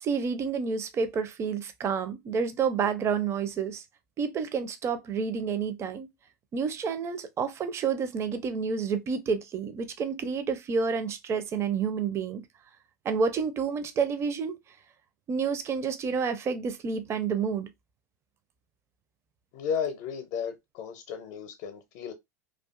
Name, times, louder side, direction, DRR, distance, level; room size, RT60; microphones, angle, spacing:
voice 1, 0.0-3.8 4.2-6.1 6.5-12.4 13.0-14.6 15.3-17.7, right 6 dB, 30° right, 0.5 m, -29 dB
voice 2, 19.5-22.1, left 7 dB, 55° left, 0.6 m, -34 dB
2.4 x 2.3 x 2.4 m
figure-of-eight pair, 85°, 10 cm